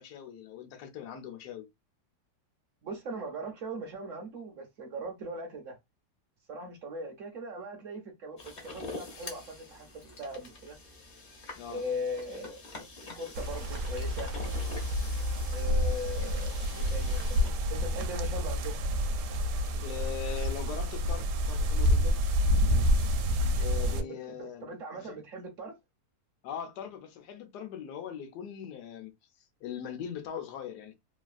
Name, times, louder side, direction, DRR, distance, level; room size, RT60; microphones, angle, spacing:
voice 1, 0.0-1.7 11.6-11.8 19.7-22.2 23.6-25.2 26.4-29.1 29.6-30.9, left 8 dB, 80° left, 1.2 m, -41 dB
voice 2, 2.8-5.8 6.5-10.8 11.7-12.6 13.2-14.4 15.5-17.4 17.7-18.8 23.7-25.7, equal, 60° right, 0.9 m, -39 dB
sound 1, 8.4-17.5, left 3 dB, 50° left, 0.5 m, -46 dB
sound 2, 13.3-24.0, equal, 85° right, 1.2 m, -28 dB
3.1 x 2.3 x 2.4 m
omnidirectional pair, 1.8 m